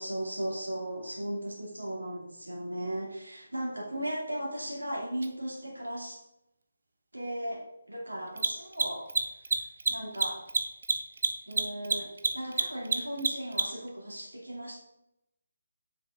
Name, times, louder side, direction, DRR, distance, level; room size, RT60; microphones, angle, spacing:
voice 1, 0.0-6.2 7.1-9.1 9.9-10.4 11.5-14.8, right 1 dB, 90° right, -4 dB, 2.2 m, -36 dB
Mechanisms, 5.2-5.3 8.3-13.9, right 3 dB, 60° right, 0.8 m, -28 dB
7.8 x 6.5 x 2.4 m, 0.85 s
figure-of-eight pair, 150°, 0 cm